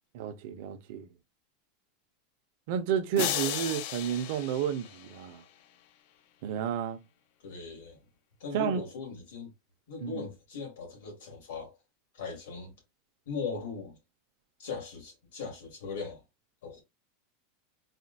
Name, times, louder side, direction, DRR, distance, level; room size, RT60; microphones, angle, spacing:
voice 1, 0.1-1.1 2.7-5.4 6.4-7.0 8.5-8.8 10.0-10.3, right 9 dB, 50° right, 0.6 m, -31 dB
sound 1, 3.2-5.5, left 12 dB, 50° left, 0.3 m, -35 dB
voice 2, 7.4-8.0 8.4-9.5 9.9-11.8 12.1-12.7 13.3-14.0 14.6-16.2 16.6-16.8, left 5 dB, 85° left, 2.4 m, -39 dB
4.1 x 2.2 x 2.6 m
supercardioid pair, 175°, 0 cm